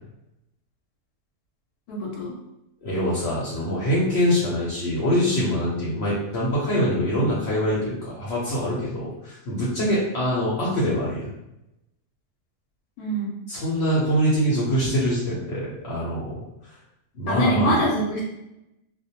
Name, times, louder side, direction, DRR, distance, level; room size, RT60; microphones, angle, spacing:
voice 1, 1.9-2.4 9.8-10.0 13.0-13.3 17.3-18.2, right 1 dB, 85° left, -2 dB, 1.1 m, -24 dB
voice 2, 2.8-11.3 13.5-16.7 17.1-17.7, equal, 55° left, -7 dB, 0.8 m, -24 dB
2.4 x 2.1 x 2.8 m, 0.89 s
omnidirectional pair, 1.6 m